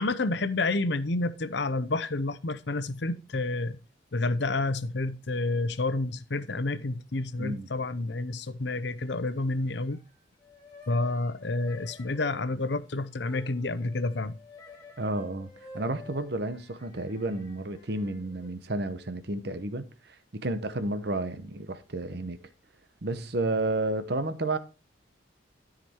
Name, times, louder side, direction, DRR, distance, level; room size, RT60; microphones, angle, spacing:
voice 1, 0.0-3.8 4.1-10.0 10.9-14.4, left 2 dB, 65° left, 0.8 m, -29 dB
voice 2, 7.4-7.7 15.0-22.4 23.0-24.6, right 2 dB, 55° right, 0.9 m, -31 dB
sound 1, 9.0-10.1 10.4-18.5, left 3 dB, 20° left, 2.2 m, -51 dB
13.0 x 5.2 x 4.4 m
head